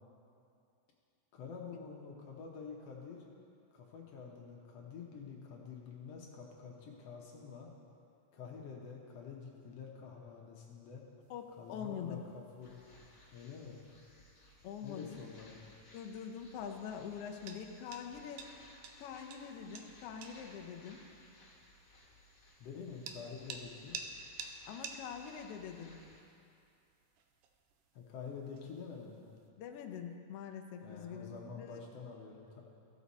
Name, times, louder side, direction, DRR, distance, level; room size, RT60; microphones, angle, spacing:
voice 1, 1.3-3.2 3.7-7.7 8.3-11.0 11.5-12.8 13.3-13.8 14.8-15.6 22.6-24.0 27.9-29.3 30.8-32.6, left 5 dB, 65° left, -1 dB, 1.8 m, -48 dB
sound 1, 11.2-29.5, right 5 dB, 75° right, 1.6 m, -53 dB
voice 2, 11.3-12.2 14.6-15.2 15.9-18.5 19.0-21.0 24.7-26.0 29.6-31.8, left 7 dB, 80° left, 3 dB, 1.3 m, -44 dB
sound 2, 12.6-26.2, left 1 dB, 40° left, 1.9 m, -61 dB
15.5 x 6.2 x 4.1 m, 2.5 s
omnidirectional pair, 3.4 m